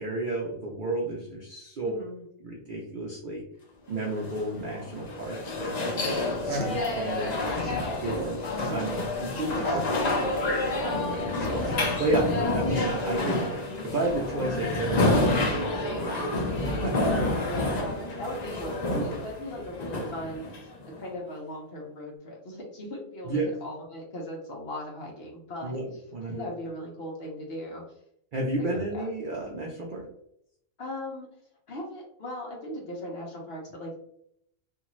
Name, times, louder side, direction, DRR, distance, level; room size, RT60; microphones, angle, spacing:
voice 1, 0.0-1.9 2.4-3.4 3.9-8.4 8.7-13.4 13.8-17.4 23.3-23.5 25.6-26.4 28.3-30.0, right 2 dB, 70° right, -1 dB, 0.4 m, -33 dB
voice 2, 1.8-2.2 12.3-12.6 17.4-20.7 21.0-25.8 26.2-27.8 28.6-29.1 30.8-31.3 31.7-34.0, left 1 dB, 50° left, -2 dB, 0.9 m, -38 dB
sound 1, 4.0-21.0, left 2 dB, 75° left, 0.3 m, -29 dB
sound 2, 6.3-7.9 8.2-13.2, equal, 45° right, 0.7 m, -38 dB
2.7 x 2.5 x 3.0 m, 0.73 s
omnidirectional pair, 1.5 m